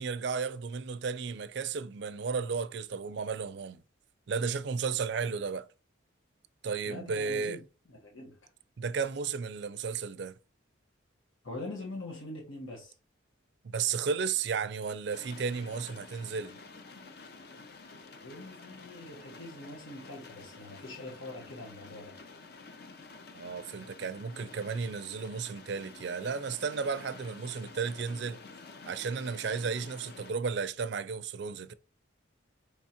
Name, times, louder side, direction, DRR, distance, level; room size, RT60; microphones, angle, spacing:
voice 1, 0.0-3.8 4.3-5.7 6.6-7.6 8.8-10.4 13.6-16.6 23.3-28.4 28.9-31.7, right 5 dB, 60° right, 0.4 m, -33 dB
voice 2, 6.8-7.6 7.9-8.4 11.4-12.9 18.2-22.2, left 2 dB, 85° left, 1.2 m, -43 dB
sound 1, 15.1-30.3, left 4 dB, 55° left, 0.5 m, -50 dB
4.7 x 3.5 x 2.8 m
head